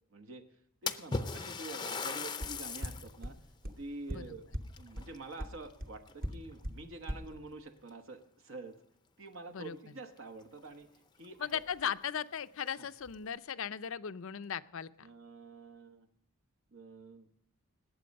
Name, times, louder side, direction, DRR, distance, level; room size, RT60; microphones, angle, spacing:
voice 1, 0.1-0.5 0.8-3.4 3.8-4.5 4.8-8.8 9.2-11.6 12.8-12.9 15.0-16.1 16.7-17.3, right 3 dB, 60° right, 7 dB, 1.0 m, -47 dB
Splash splatter, 0.9-3.2 3.6-3.7 4.7-5.7 6.1-6.5 7.3-7.4 7.9-8.0 10.2-10.3 10.6-10.7 11.2-11.3 11.7-11.8 12.6-13.1, left 4 dB, 20° left, 0.5 m, -38 dB
sound 1, 2.4-2.5 2.8-2.9 3.2-3.3 3.6-3.7 4.1-4.2 4.5-4.6 5.0-5.1 5.4-5.5 5.8-5.9 6.2-6.3 6.6-6.7 7.1-7.2, equal, 40° right, 1.2 m, -35 dB
voice 2, 11.4-15.1, left 8 dB, 65° left, 14 dB, 0.5 m, -37 dB
19.5 x 8.5 x 5.3 m, 0.76 s
head